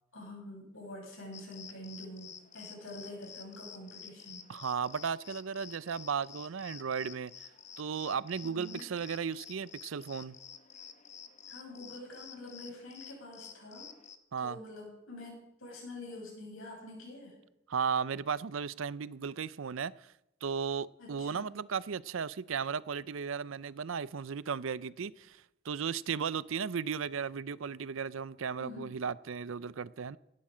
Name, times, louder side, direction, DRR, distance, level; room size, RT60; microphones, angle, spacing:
voice 1, 0.1-4.5 8.4-8.8 11.5-13.9 14.4-17.4 21.0-21.5 28.6-28.9, left 1 dB, 80° left, -2 dB, 7.5 m, -46 dB
sound 1, 1.3-14.2, left 7 dB, 35° left, 1.0 m, -51 dB
voice 2, 4.5-7.3 7.8-10.4 14.3-14.6 17.7-20.1 20.4-30.2, right 6 dB, 75° right, 19 dB, 0.5 m, -35 dB
18.0 x 12.0 x 5.0 m, 0.85 s
head